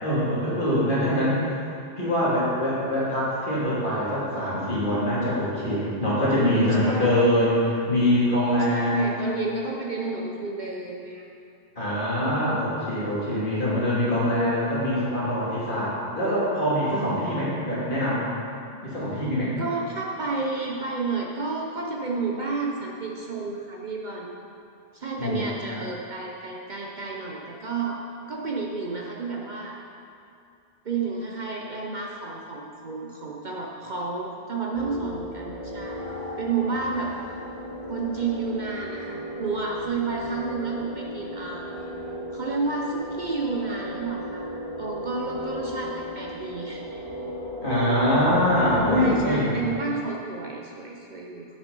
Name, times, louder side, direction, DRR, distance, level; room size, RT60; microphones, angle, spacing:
voice 1, 0.0-1.4 2.0-9.1 11.8-18.2 18.8-19.6 25.2-25.5 47.6-49.6, equal, 50° left, -9 dB, 2.7 m, -23 dB
voice 2, 8.7-11.3 19.6-24.3 24.9-28.0 28.3-29.8 30.8-36.1 36.4-37.1 37.9-41.7 42.3-46.8 48.9-51.5, right 4 dB, 50° right, -2 dB, 0.8 m, -31 dB
sound 1, 34.7-49.2, equal, 35° left, 1.2 m, -35 dB
8.5 x 5.9 x 5.3 m, 2.5 s
omnidirectional pair, 1.1 m